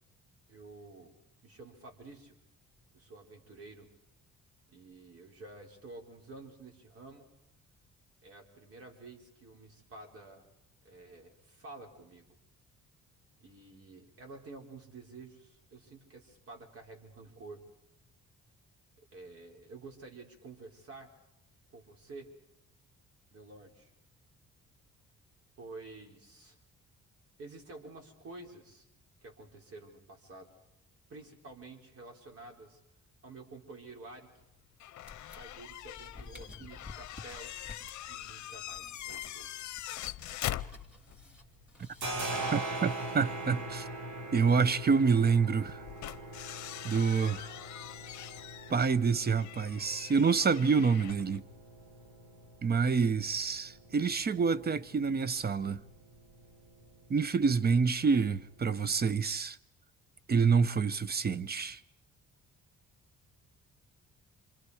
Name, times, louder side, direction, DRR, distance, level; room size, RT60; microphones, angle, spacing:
voice 1, 0.5-2.4 2.9-3.9 4.7-7.4 8.2-10.5 10.8-12.4 13.4-17.6 19.0-21.1 21.7-22.4 23.3-23.9 25.6-26.6 27.4-28.9 29.2-30.5 31.1-32.8 33.2-34.3 35.4-37.5 38.1-39.5 46.0-46.2, right 3 dB, 50° right, 4.4 m, -50 dB
sound 1, 34.8-41.3 41.6-41.7 43.7-43.8 45.6-51.4, left 13 dB, 70° left, 0.7 m, -43 dB
sound 2, 35.0-42.6, left 3 dB, 5° right, 2.8 m, -53 dB
sound 3, 40.6-41.4 41.6-59.1, right 2 dB, 70° right, 2.6 m, -43 dB
voice 2, 42.5-43.9 44.3-45.8 46.8-47.5 48.7-51.4 52.6-55.8 57.1-59.6 60.3-61.8, right 5 dB, 30° right, 0.8 m, -27 dB
26.5 x 26.0 x 4.9 m
cardioid pair, 90°, 30 cm